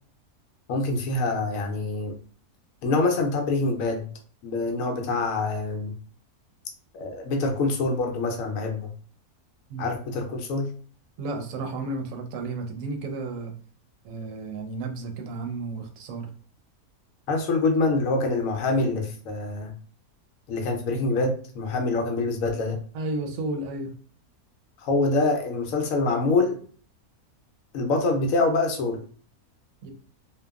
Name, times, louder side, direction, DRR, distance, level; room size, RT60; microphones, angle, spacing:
voice 1, 0.7-2.2 2.8-4.1 4.4-5.9 6.9-8.9 9.8-10.7 17.3-19.7 20.5-22.8 24.8-26.6 27.7-29.0, left 3 dB, 70° left, 4 dB, 0.9 m, -25 dB
voice 2, 11.2-13.5 14.0-16.3 22.9-23.9 29.8-29.9, right 3 dB, 70° right, 5 dB, 0.9 m, -32 dB
2.8 x 2.2 x 2.3 m, 0.43 s
omnidirectional pair, 1.6 m